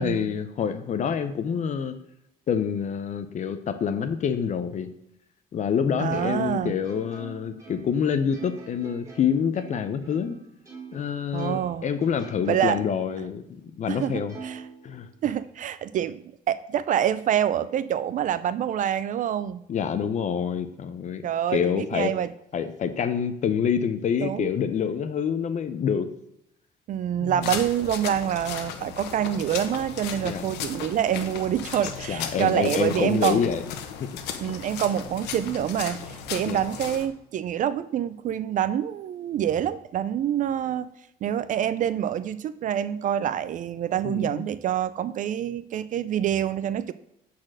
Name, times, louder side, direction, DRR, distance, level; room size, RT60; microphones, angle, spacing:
voice 1, 0.0-2.0 2.5-4.9 5.5-10.4 10.9-13.4 13.8-14.3 14.8-15.1 19.7-21.2 21.5-22.1 22.5-26.1 27.2-27.5 30.2-30.5 32.1-33.6 34.0-34.1 36.5-36.6 44.0-44.4, left 7 dB, 45° left, 10 dB, 0.6 m, -27 dB
voice 2, 6.0-6.7 11.3-11.8 12.5-12.8 13.9-14.6 15.2-19.6 21.2-22.3 24.2-24.5 26.9-33.4 34.4-40.9 41.2-46.9, right 10 dB, 50° right, 15 dB, 0.4 m, -26 dB
Plucked string instrument, 6.1-11.1 11.4-13.1 13.5-13.6 14.3-15.5, right 5 dB, 20° right, 2.7 m, -45 dB
sound 1, 27.4-37.1, left 8 dB, 90° left, 1.0 m, -36 dB
8.6 x 4.3 x 6.2 m, 0.80 s
cardioid pair, 110°, 17 cm